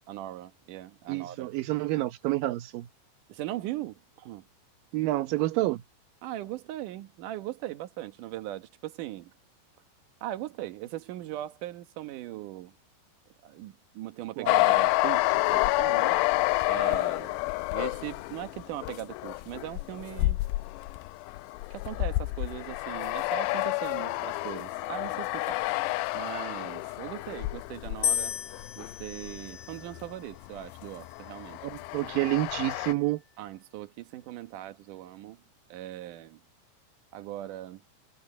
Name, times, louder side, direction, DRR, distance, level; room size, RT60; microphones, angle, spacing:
voice 1, 0.0-1.5 3.3-4.4 6.2-9.3 10.2-12.7 13.4-16.2 16.7-17.4 17.7-20.4 21.7-25.6 26.1-28.3 28.8-31.6 33.4-35.4 35.7-36.4 37.1-37.8, right 14 dB, 70° right, 2.1 m, -39 dB
voice 2, 1.1-2.9 4.9-5.8 14.4-14.6 31.6-33.2, right 17 dB, 85° right, 1.9 m, -28 dB
sound 1, 14.5-30.1 30.4-32.9, left 20 dB, 85° left, 2.6 m, -29 dB
sound 2, 28.0-30.2 31.0-31.6, left 8 dB, 45° left, 1.9 m, -34 dB
omnidirectional pair, 5.2 m